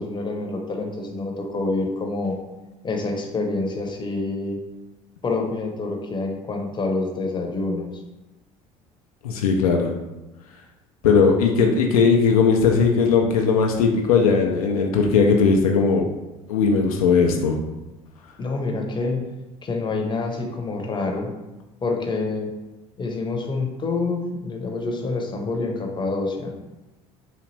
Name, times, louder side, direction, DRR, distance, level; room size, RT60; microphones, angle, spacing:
voice 1, 0.0-2.4 2.8-4.6 5.2-7.9 18.4-19.2 19.6-21.3 21.8-22.5 23.0-26.5, left 3 dB, 25° left, 2 dB, 0.8 m, -27 dB
voice 2, 9.2-9.9 11.0-16.1 16.5-17.6, left 5 dB, 80° left, 2 dB, 0.4 m, -18 dB
4.0 x 2.4 x 3.2 m, 1.0 s
hypercardioid pair, 65°, 18 cm